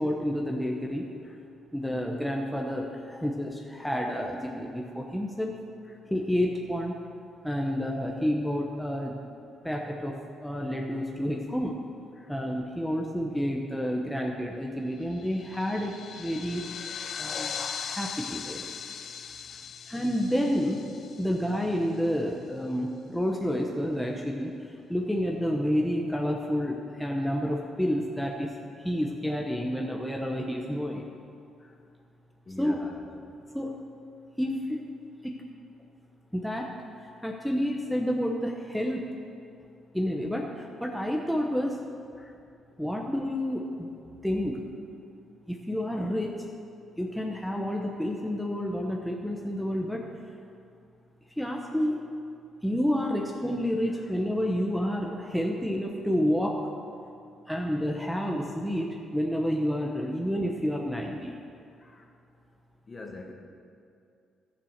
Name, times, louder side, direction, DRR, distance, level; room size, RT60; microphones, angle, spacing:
voice 1, 0.0-1.0 1.7-5.5 6.1-6.9 7.4-9.1 9.6-10.1 10.4-11.8 12.3-16.6 17.2-17.5 17.8-18.7 19.9-20.8 21.2-24.5 24.9-28.5 28.8-31.0 32.6-32.8 33.5-33.7 34.4-34.8 35.2-35.4 36.3-36.7 37.2-39.1 39.9-41.8 42.8-43.9 44.2-44.6 45.5-46.5 47.0-50.0 51.4-52.0 52.6-56.6 57.5-61.4, equal, ahead, 0 dB, 1.0 m, -29 dB
sound 1, 15.1-22.0, left 7 dB, 55° left, 0.6 m, -39 dB
voice 2, 32.4-33.0 42.2-42.4 53.9-54.1 55.1-55.3 61.8-62.1 62.9-63.3, left 2 dB, 35° left, 2 dB, 1.6 m, -46 dB
13.5 x 6.8 x 6.6 m, 2.5 s
cardioid pair, 90°, 0 cm